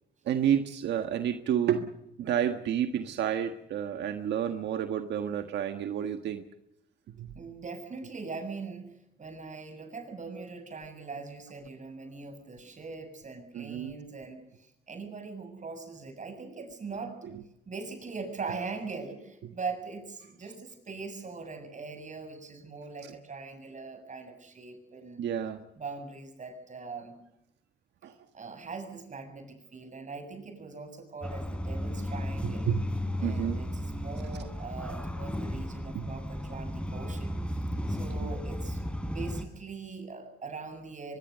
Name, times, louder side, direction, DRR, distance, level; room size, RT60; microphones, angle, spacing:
voice 1, 0.3-1.9 2.2-6.4 7.2-7.3 13.5-13.9 23.0-23.1 25.2-25.6 28.0-28.1 32.4-32.9 33.2-33.6 35.9-36.1 38.2-38.3, right 9 dB, 90° right, 7 dB, 1.5 m, -30 dB
voice 2, 7.3-17.2 17.7-25.3 25.7-27.2 28.3-32.7 33.2-41.2, right 4 dB, 45° right, 8 dB, 7.2 m, -41 dB
sound 1, 31.2-39.4, equal, 5° left, 3.8 m, -34 dB
24.0 x 22.0 x 6.8 m, 0.83 s
cardioid pair, 85°, 18 cm